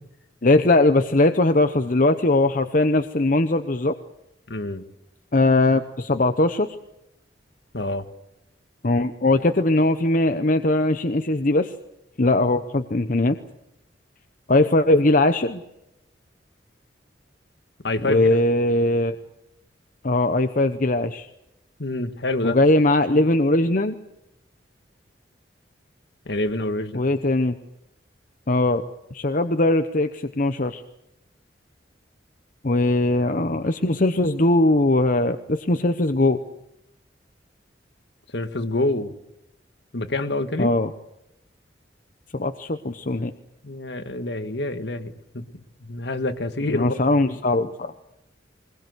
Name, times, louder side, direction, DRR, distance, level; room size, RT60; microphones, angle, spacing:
voice 1, 0.4-4.0 5.3-6.8 8.8-11.7 12.2-13.4 14.5-15.6 18.0-19.2 20.0-21.3 22.4-23.9 26.9-27.6 28.5-28.8 29.1-30.8 32.6-36.4 40.6-40.9 42.3-43.3 46.7-47.9, left 2 dB, 45° left, 8 dB, 0.9 m, -20 dB
voice 2, 4.5-4.8 7.7-8.0 17.8-18.3 21.8-22.6 26.3-27.1 38.3-39.1 39.9-40.7 43.6-45.4 45.8-47.0, left 2 dB, 65° left, 9 dB, 1.7 m, -27 dB
22.0 x 21.0 x 8.0 m, 0.84 s
head